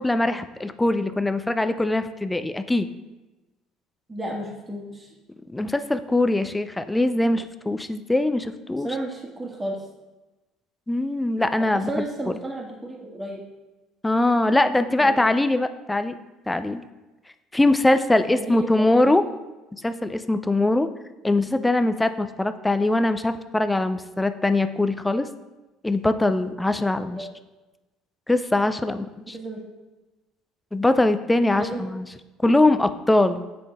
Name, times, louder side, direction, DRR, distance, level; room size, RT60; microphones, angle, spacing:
voice 1, 0.0-2.9 5.5-8.9 10.9-11.9 12.3-12.4 14.0-16.1 16.5-16.8 17.5-19.2 19.8-20.9 21.2-25.3 25.8-27.3 28.3-29.4 30.7-32.0 32.4-33.4, left 2 dB, 10° left, 10 dB, 0.4 m, -22 dB
voice 2, 4.1-5.1 8.8-9.8 11.6-13.4 15.0-15.1 18.3-19.2 27.1-27.3 29.3-29.6 31.6-31.8, right 1 dB, 20° right, 0 dB, 1.5 m, -32 dB
7.6 x 3.8 x 3.6 m, 1.1 s
hypercardioid pair, 70°, 0 cm